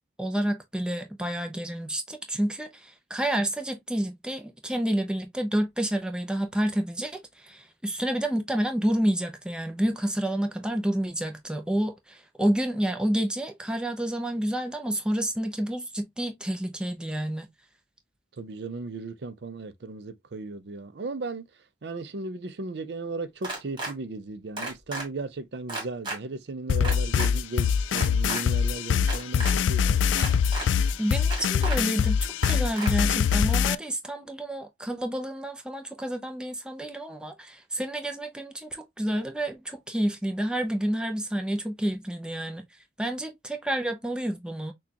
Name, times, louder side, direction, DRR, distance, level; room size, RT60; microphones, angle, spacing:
voice 1, 0.2-17.5 31.0-42.7 43.0-44.7, right 1 dB, 5° right, 0.5 m, -29 dB
voice 2, 18.4-21.5 21.8-30.1, right 3 dB, 65° right, 0.5 m, -36 dB
sound 1, 23.4-23.9 24.6-25.1 25.7-26.2 26.8-27.3 27.9-28.4 29.0-29.5 30.2-30.7 31.3-31.8 32.4-32.9, right 2 dB, 25° right, 1.6 m, -33 dB
sound 2, 26.7-33.7, left 7 dB, 85° left, 0.3 m, -23 dB
6.0 x 2.4 x 2.8 m
head